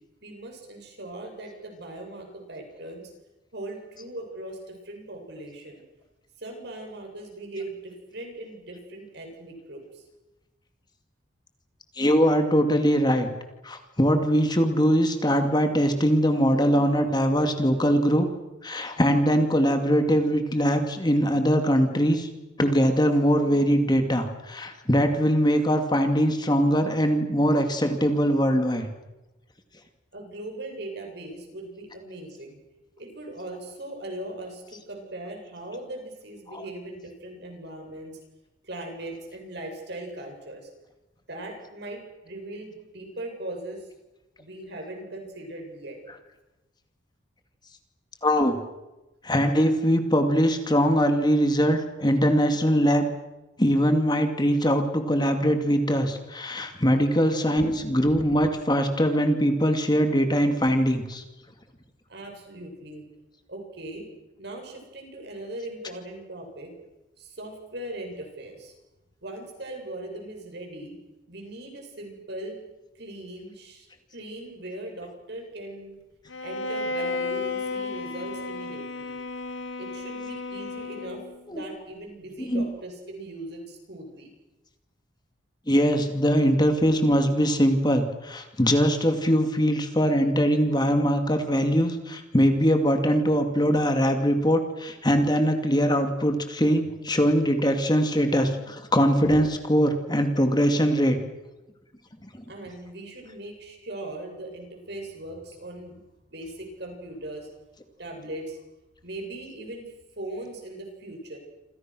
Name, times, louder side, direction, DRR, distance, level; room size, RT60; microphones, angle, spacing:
voice 1, 0.2-3.1 3.5-5.8 6.4-10.1 30.1-32.6 33.0-38.1 38.6-40.7 41.3-43.9 44.4-46.0 52.9-53.1 62.1-63.0 63.5-64.1 64.4-66.7 67.2-68.7 69.2-70.9 71.3-72.6 72.9-73.9 74.1-76.0 76.4-79.2 79.8-81.2 81.5-84.3 102.5-107.5 108.0-108.6 109.0-111.4, right 1 dB, 60° right, 3 dB, 7.9 m, -39 dB
voice 2, 12.0-13.3 13.6-18.3 18.6-22.3 22.6-28.9 36.5-36.6 48.2-48.6 49.2-53.1 53.6-61.2 81.5-81.6 82.4-82.7 85.7-101.2, equal, 20° left, 6 dB, 2.5 m, -22 dB
Bowed string instrument, 76.3-81.4, left 3 dB, 80° left, 1.8 m, -33 dB
28.5 x 27.0 x 6.4 m, 1.0 s
head